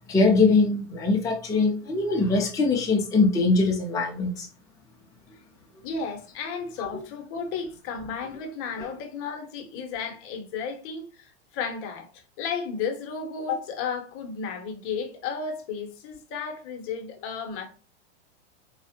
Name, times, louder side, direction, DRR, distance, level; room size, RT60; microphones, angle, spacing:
voice 1, 0.1-4.5, left 3 dB, 10° left, 0.6 m, -22 dB
voice 2, 5.8-17.7, left 5 dB, 40° left, 0.9 m, -33 dB
4.2 x 2.4 x 2.8 m
hypercardioid pair, 115°, 34 cm